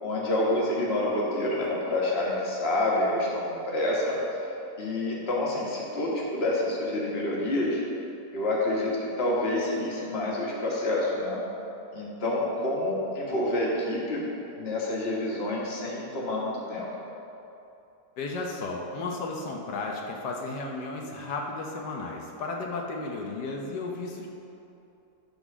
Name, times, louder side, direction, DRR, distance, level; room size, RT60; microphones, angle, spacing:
voice 1, 0.0-4.2 4.8-7.8 8.3-11.4 11.9-14.2 14.6-16.9, left 1 dB, 40° left, -4 dB, 1.6 m, -28 dB
voice 2, 18.2-24.3, left 3 dB, 85° left, 0 dB, 1.4 m, -34 dB
11.0 x 4.0 x 6.0 m, 2.8 s
omnidirectional pair, 1.8 m